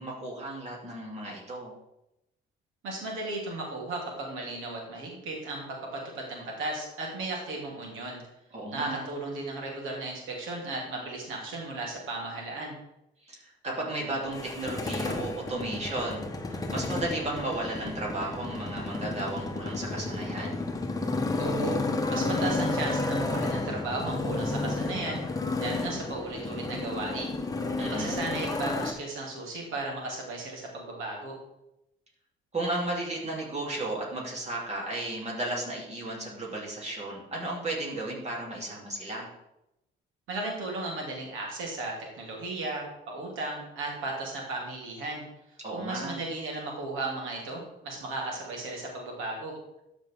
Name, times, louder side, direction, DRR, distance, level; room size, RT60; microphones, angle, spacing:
voice 1, 0.0-1.7 8.5-9.0 13.3-20.6 27.8-28.2 32.5-39.3 45.6-46.2, right 2 dB, 35° right, -4 dB, 3.4 m, -34 dB
voice 2, 2.8-8.2 8.7-12.7 21.4-21.8 22.1-25.2 25.6-27.4 27.9-31.4 40.3-45.2 45.7-49.6, right 2 dB, 90° right, -2 dB, 2.9 m, -35 dB
Motorcycle, 14.3-28.9, left 2 dB, 20° left, 1.1 m, -32 dB
13.0 x 5.1 x 3.8 m, 0.87 s
cardioid pair, 90°, 20 cm